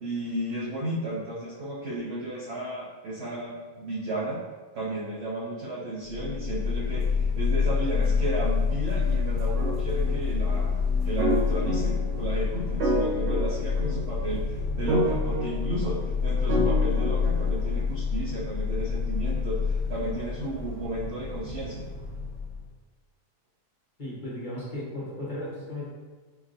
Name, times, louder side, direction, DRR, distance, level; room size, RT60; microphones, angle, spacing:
voice 1, 0.0-4.4 4.7-10.8 11.0-21.9, right 1 dB, 65° right, -5 dB, 0.6 m, -33 dB
sound 1, 6.1-22.7, left 5 dB, 65° left, 1.4 m, -28 dB
sound 2, 9.6-10.1 11.2-12.2 12.8-14.2 14.9-15.9 16.5-17.6, right 1 dB, 85° right, 1.7 m, -29 dB
voice 2, 24.0-25.9, left 1 dB, 35° left, -8 dB, 1.0 m, -35 dB
5.2 x 2.5 x 2.5 m, 1.4 s
omnidirectional pair, 1.8 m